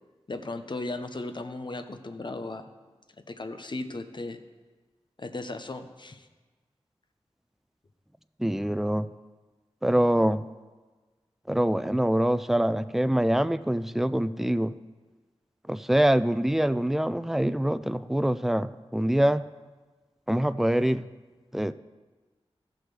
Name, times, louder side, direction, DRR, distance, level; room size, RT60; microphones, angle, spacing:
voice 1, 0.3-2.7 3.2-4.4 5.2-6.3, left 2 dB, 45° left, 9 dB, 0.7 m, -36 dB
voice 2, 8.4-9.1 9.8-10.4 11.5-14.7 15.7-19.4 20.3-21.1 21.5-21.7, right 1 dB, 5° right, 14 dB, 0.3 m, -24 dB
15.5 x 6.2 x 3.3 m, 1.3 s
cardioid pair, 45°, 11 cm